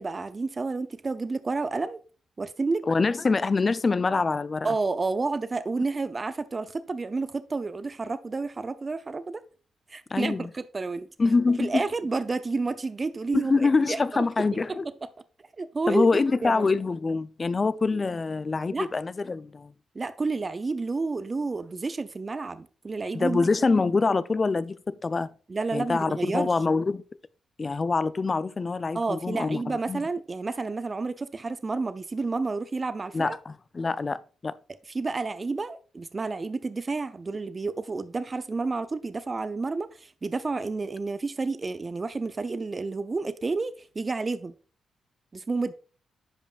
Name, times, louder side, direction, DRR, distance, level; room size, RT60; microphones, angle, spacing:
voice 1, 0.0-2.0 2.4-2.8 4.6-9.4 9.9-11.1 11.6-14.8 15.6-16.1 16.4-16.7 18.7-18.9 20.0-23.5 25.5-26.5 28.9-33.4 34.9-44.5 45.3-45.7, right 3 dB, 40° right, 0.5 m, -30 dB
voice 2, 2.9-4.7 10.1-10.5 11.2-11.8 13.3-14.8 15.9-19.7 23.1-25.3 25.7-27.0 27.6-30.0 33.1-34.5, left 4 dB, 40° left, 0.4 m, -25 dB
10.0 x 5.2 x 2.4 m
hypercardioid pair, 45°, 0 cm